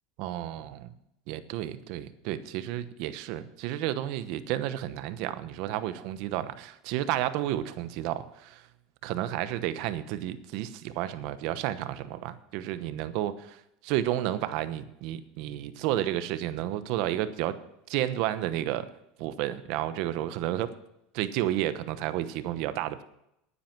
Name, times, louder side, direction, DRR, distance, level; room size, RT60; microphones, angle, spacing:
voice 1, 0.2-0.9 1.3-8.6 9.0-13.6 13.8-17.6 17.9-18.9 19.2-20.7 21.1-23.0, right 13 dB, 60° right, 12 dB, 1.0 m, -31 dB
11.0 x 9.9 x 6.0 m, 0.81 s
supercardioid pair, 125°, 0 cm